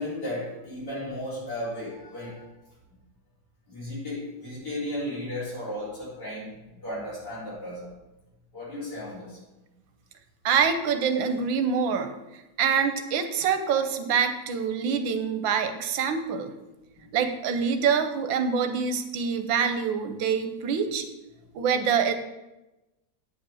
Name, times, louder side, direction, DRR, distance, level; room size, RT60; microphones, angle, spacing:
voice 1, 0.0-2.4 3.7-6.5 6.8-7.9 8.5-9.4 16.9-17.1, left 1 dB, 60° left, -8 dB, 4.3 m, -34 dB
voice 2, 10.4-12.1 12.6-16.5 17.1-21.0 21.5-22.2, right 6 dB, 85° right, 8 dB, 1.6 m, -25 dB
9.0 x 5.3 x 6.2 m, 1.0 s
omnidirectional pair, 2.0 m